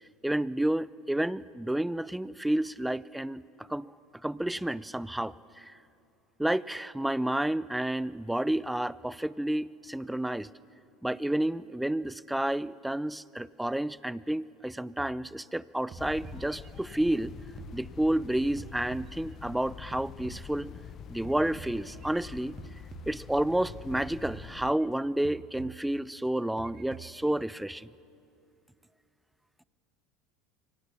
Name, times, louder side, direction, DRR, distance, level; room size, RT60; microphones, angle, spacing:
voice 1, 0.2-3.9 4.2-5.8 6.4-10.5 11.0-17.3 17.7-20.8 21.1-22.6 23.1-27.9, right 1 dB, 5° right, 20 dB, 0.6 m, -30 dB
sound 1, 15.0-15.6 15.9-18.3 18.6-20.9 21.2-23.6 23.9-25.0 25.2-26.3 26.6-27.3, right 9 dB, 35° right, 1.3 m, -49 dB
sound 2, 16.0-24.7, left 8 dB, 40° left, 0.9 m, -46 dB
28.0 x 24.5 x 7.0 m, 2.6 s
hypercardioid pair, 75°, 0 cm